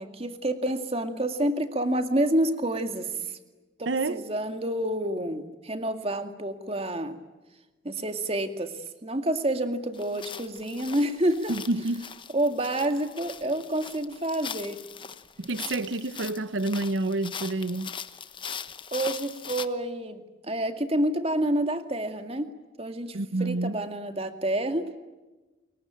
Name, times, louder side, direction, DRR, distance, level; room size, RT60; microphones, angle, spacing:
voice 1, 0.0-3.4 3.8-7.2 7.8-11.6 12.3-14.8 18.9-22.5 22.8-24.9, right 1 dB, 30° right, 2.2 m, -28 dB
voice 2, 3.9-4.2 11.5-12.1 15.4-17.9 23.1-23.8, right 2 dB, 80° right, 0.8 m, -28 dB
sound 1, 9.9-19.7, left 7 dB, 25° left, 1.0 m, -40 dB
30.0 x 22.0 x 9.0 m
head